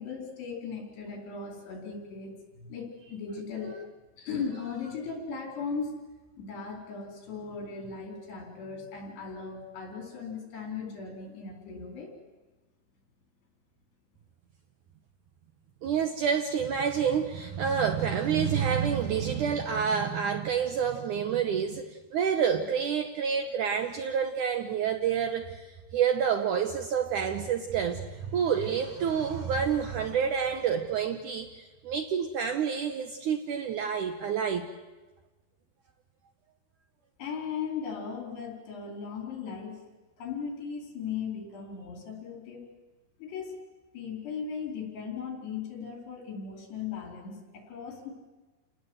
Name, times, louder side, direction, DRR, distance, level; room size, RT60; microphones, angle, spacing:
voice 1, 0.0-2.4 2.7-3.8 4.2-6.0 6.4-12.1 37.2-39.9 40.2-42.7 43.2-43.6 43.9-48.1, left 5 dB, 80° left, 2 dB, 6.5 m, -37 dB
voice 2, 15.8-34.7, right 7 dB, 70° right, 6 dB, 1.9 m, -28 dB
29.0 x 18.0 x 8.0 m, 1.2 s
omnidirectional pair, 4.8 m